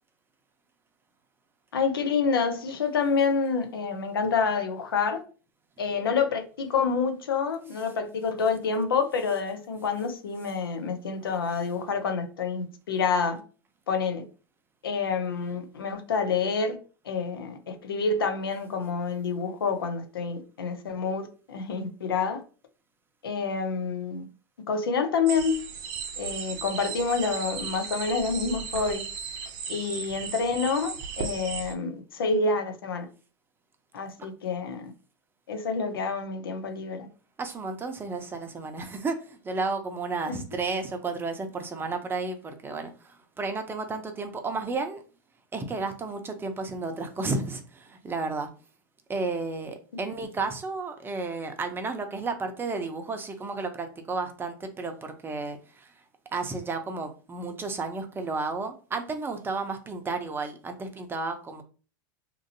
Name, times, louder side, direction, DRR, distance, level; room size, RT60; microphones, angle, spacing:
voice 1, 1.7-5.2 5.8-13.4 13.9-14.2 14.8-16.8 17.0-22.4 23.2-24.3 24.7-25.5 26.2-29.0 29.7-33.1 33.9-34.9 35.5-37.0, left 5 dB, 90° left, 0.6 m, -28 dB
sound 1, 25.3-31.7, right 6 dB, 60° right, 0.6 m, -36 dB
voice 2, 37.4-45.0 45.5-48.5 49.1-55.9 56.3-61.6, right 3 dB, 20° right, 0.6 m, -32 dB
2.9 x 2.6 x 2.6 m
hypercardioid pair, 100°, 12 cm